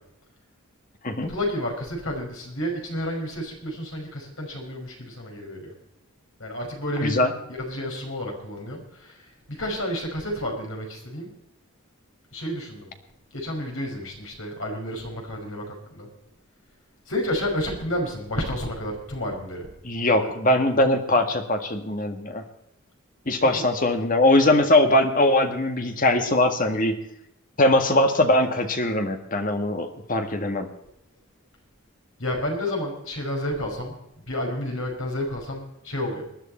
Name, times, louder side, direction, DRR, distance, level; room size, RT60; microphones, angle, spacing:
voice 1, 1.2-5.7 6.4-7.2 7.5-11.3 12.3-12.9 13.3-16.1 17.1-19.7 20.2-20.3 23.4-23.5 32.2-34.0 34.3-36.2, left 1 dB, 70° left, 0 dB, 5.5 m, -30 dB
voice 2, 7.0-7.3 19.8-22.4 23.2-27.0 27.6-30.7, left 1 dB, 40° left, 6 dB, 1.7 m, -21 dB
20.5 x 11.5 x 4.4 m, 0.81 s
head